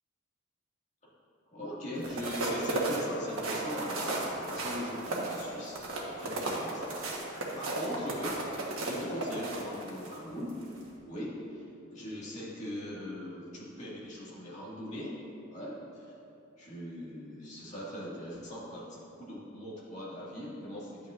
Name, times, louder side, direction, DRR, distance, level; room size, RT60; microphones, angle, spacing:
voice 1, 1.5-5.8 6.1-7.0 7.2-8.4 8.8-10.6 11.0-11.6 11.9-15.2 15.5-16.1 16.6-21.1, equal, 35° left, -7 dB, 1.9 m, -40 dB
sound 1, 2.0-10.2 10.6-10.8, right 2 dB, 85° right, 1.3 m, -34 dB
10.5 x 8.5 x 2.5 m, 2.7 s
head